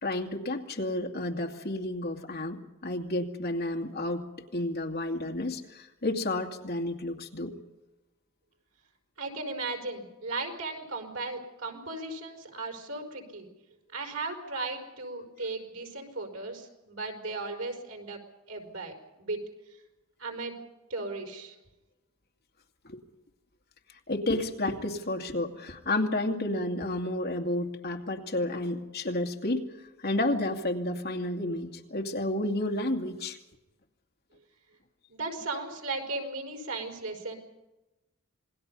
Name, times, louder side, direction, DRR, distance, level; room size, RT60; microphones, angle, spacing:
voice 1, 0.0-4.2 4.5-7.5 22.8-23.0 24.1-29.7 30.0-33.4, left 1 dB, 50° left, 3 dB, 2.4 m, -31 dB
voice 2, 9.2-13.5 13.9-18.2 18.5-19.4 20.2-20.6 20.9-21.6 35.1-37.4, right 3 dB, 80° right, 3 dB, 5.2 m, -36 dB
27.5 x 21.0 x 5.5 m, 1.0 s
head